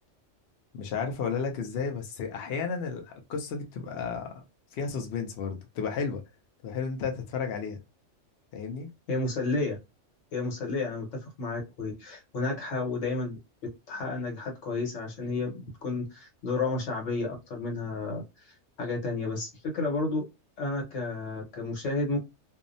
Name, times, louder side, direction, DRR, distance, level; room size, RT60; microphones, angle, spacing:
voice 1, 0.7-4.4 4.7-6.2 6.6-7.8 8.5-8.9, left 5 dB, 65° left, 0.8 m, -33 dB
voice 2, 9.1-9.8 10.3-13.4 13.9-20.2 20.6-22.2, left 3 dB, 80° left, 1.4 m, -31 dB
2.7 x 2.0 x 2.5 m
omnidirectional pair, 1.3 m